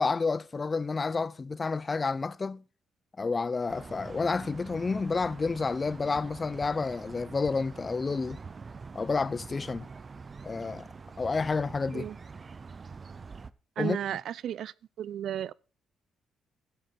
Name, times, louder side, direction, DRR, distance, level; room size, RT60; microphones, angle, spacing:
voice 1, 0.0-2.6 3.2-8.4 8.9-9.9 10.4-10.9 11.2-12.1 13.8-14.0, left 4 dB, 30° left, 0.6 m, -30 dB
sound 1, 3.7-13.5, right 4 dB, 35° right, 0.7 m, -45 dB
voice 2, 13.8-15.5, right 10 dB, 70° right, 0.5 m, -34 dB
13.0 x 9.3 x 3.8 m
cardioid pair, 90°, 0 cm